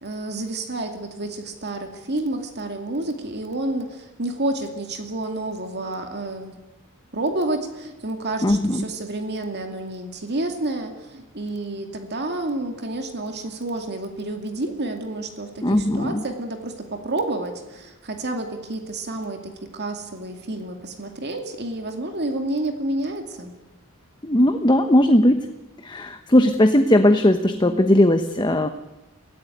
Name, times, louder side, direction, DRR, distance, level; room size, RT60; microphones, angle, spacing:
voice 1, 0.0-6.6 7.1-23.5, right 2 dB, 50° right, 5 dB, 2.4 m, -29 dB
voice 2, 8.4-8.8 15.6-16.2 24.2-25.5 25.8-28.7, left 1 dB, 20° left, 7 dB, 1.1 m, -18 dB
24.0 x 16.5 x 9.2 m, 1.0 s
head